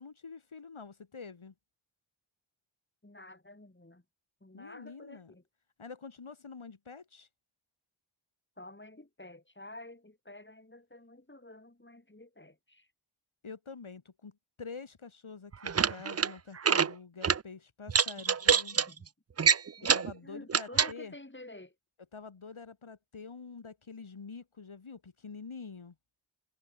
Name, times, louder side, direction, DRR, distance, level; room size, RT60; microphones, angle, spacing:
voice 1, 0.0-1.5 4.5-5.3 5.8-7.3 13.4-18.8 19.9-21.1 22.1-26.0, left 5 dB, 70° left, 3.6 m, -47 dB
voice 2, 3.0-4.0 4.4-5.4 8.6-12.9 18.2-18.4 18.7-19.1 19.8-20.0 20.2-21.7, left 2 dB, 20° left, 6.3 m, -50 dB
sound 1, 15.5-16.3 16.6-16.9 17.2-17.4 17.9-18.8 19.4-20.1 20.5-20.9, right 6 dB, 30° right, 0.5 m, -25 dB
wide cardioid pair, 55°, 50 cm